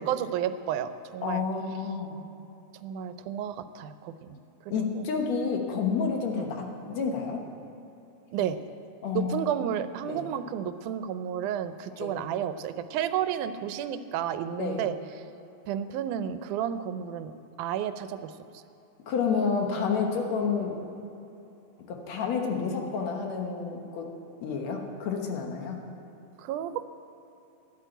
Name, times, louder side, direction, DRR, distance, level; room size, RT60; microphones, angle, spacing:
voice 1, 0.0-1.4 2.7-4.4 4.6-5.1 6.3-6.5 8.3-8.6 9.1-14.9 15.7-18.6 26.4-26.8, right 9 dB, 85° right, 11 dB, 2.1 m, -32 dB
voice 2, 1.2-2.2 4.7-7.4 9.0-9.5 10.0-10.2 12.0-12.1 14.6-14.8 19.1-20.8 21.9-24.1 24.4-25.8, left 5 dB, 65° left, 2 dB, 2.3 m, -29 dB
11.5 x 8.4 x 9.1 m, 3.0 s
omnidirectional pair, 3.5 m